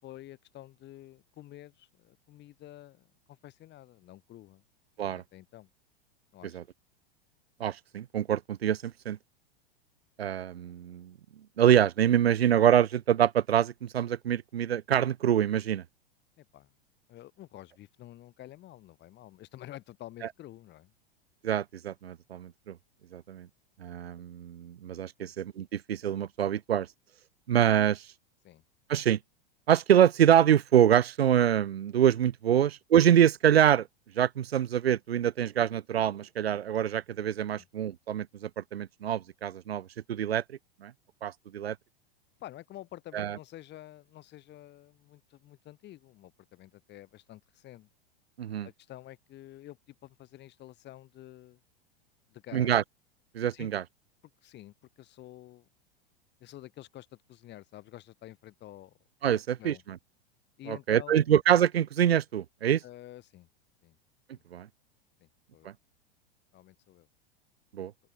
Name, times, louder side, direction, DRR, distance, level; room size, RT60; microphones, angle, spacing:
voice 1, 0.0-4.6 5.0-5.7 6.3-6.6 16.4-16.7 17.1-20.9 25.2-25.3 28.4-28.6 32.5-32.7 37.6-37.7 42.4-47.9 48.6-51.6 52.3-52.8 53.5-53.7 54.4-55.7 56.4-59.0 59.3-59.8 60.6-61.3 62.8-63.5 63.8-64.0 64.3-64.4 65.2-65.7 66.5-67.1, left 14 dB, 35° left, 3.1 m, -49 dB
voice 2, 7.6-9.2 10.2-11.1 11.6-15.8 21.4-22.8 23.1-23.5 23.8-26.9 27.5-28.0 28.9-29.2 29.7-33.9 34.2-40.4 40.8-40.9 41.2-41.8 43.1-43.4 48.4-48.7 52.5-52.8 53.3-53.8 59.2-60.0 60.7-62.8 64.5-64.7 65.6-65.7 67.7-67.9, right 10 dB, 85° right, 0.7 m, -25 dB
open air
hypercardioid pair, 95°, 30 cm